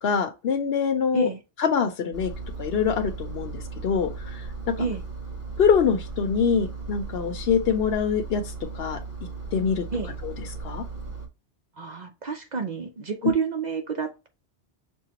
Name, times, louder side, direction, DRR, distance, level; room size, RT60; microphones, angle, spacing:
voice 1, 0.0-1.3 1.6-2.3 2.6-4.4 4.7-4.8 5.6-8.4 8.7-9.0 9.5-9.9 10.2-10.3 10.6-10.8, left 6 dB, 65° left, 0.9 m, -24 dB
Engine, 2.1-11.3, right 4 dB, 15° right, 1.0 m, -36 dB
voice 2, 11.8-14.3, right 5 dB, 50° right, 0.6 m, -29 dB
6.3 x 2.1 x 2.8 m
omnidirectional pair, 1.1 m